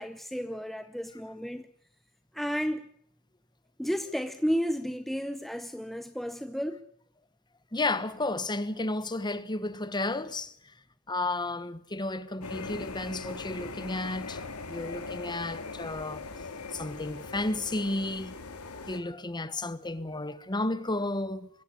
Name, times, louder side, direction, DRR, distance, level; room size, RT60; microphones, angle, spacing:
voice 1, 0.0-1.7 2.3-2.8 3.8-6.8, equal, ahead, 0.8 m, -32 dB
voice 2, 7.7-10.7 11.1-14.4 14.7-18.4 18.9-21.5, left 2 dB, 20° left, 1.2 m, -33 dB
sound 1, 12.4-19.0, left 3 dB, 75° left, 2.4 m, -40 dB
21.5 x 16.0 x 8.4 m
head